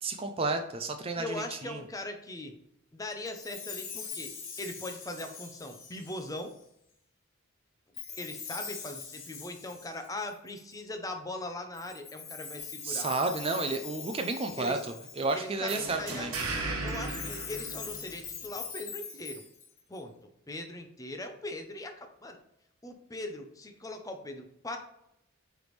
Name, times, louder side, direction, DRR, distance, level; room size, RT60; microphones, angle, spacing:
voice 1, 0.0-1.8 12.8-16.3, right 3 dB, 25° right, 6 dB, 0.4 m, -32 dB
voice 2, 1.2-2.5 2.9-4.3 4.6-6.5 8.2-13.1 14.6-14.8 15.3-16.3 16.8-19.4 19.9-20.1 20.5-22.4 22.8-24.8, left 2 dB, 15° left, 5 dB, 0.6 m, -40 dB
Chime, 3.2-6.6 7.9-10.8 11.7-15.6 16.8-20.0, left 6 dB, 65° left, 1.3 m, -43 dB
sound 1, 15.7-18.4, right 3 dB, 80° right, 1.3 m, -36 dB
9.1 x 3.4 x 3.1 m, 0.78 s
head